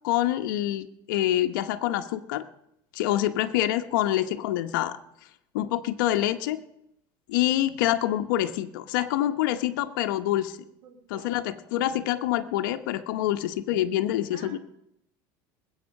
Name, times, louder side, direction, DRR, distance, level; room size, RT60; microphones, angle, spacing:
voice 1, 0.0-2.4 2.9-5.0 5.5-6.6 7.3-10.6 11.1-14.6, left 13 dB, 85° left, 7 dB, 1.0 m, -26 dB
voice 2, 10.8-11.3 14.3-14.6, right 8 dB, 60° right, 5 dB, 2.8 m, -47 dB
20.0 x 8.3 x 6.5 m, 0.77 s
supercardioid pair, 150°, 10 cm